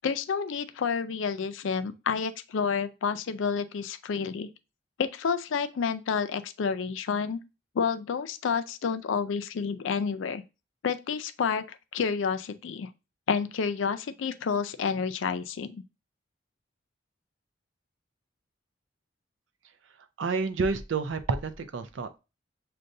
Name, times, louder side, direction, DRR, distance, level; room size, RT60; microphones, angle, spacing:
voice 1, 0.0-4.5 5.0-7.4 7.7-10.4 10.8-12.9 13.3-15.8, left 6 dB, 80° left, 0.4 m, -29 dB
voice 2, 20.2-22.2, right 4 dB, 75° right, 0.5 m, -29 dB
6.4 x 2.2 x 2.6 m
head